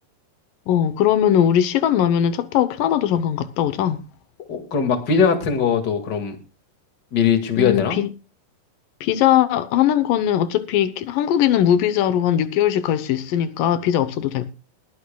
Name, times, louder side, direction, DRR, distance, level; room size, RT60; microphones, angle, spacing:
voice 1, 0.7-4.1 7.6-8.1 9.0-14.5, left 10 dB, 85° left, 2.6 m, -20 dB
voice 2, 4.5-6.4 7.1-8.0, left 6 dB, 35° left, 2.2 m, -20 dB
21.0 x 10.5 x 2.3 m
omnidirectional pair, 3.8 m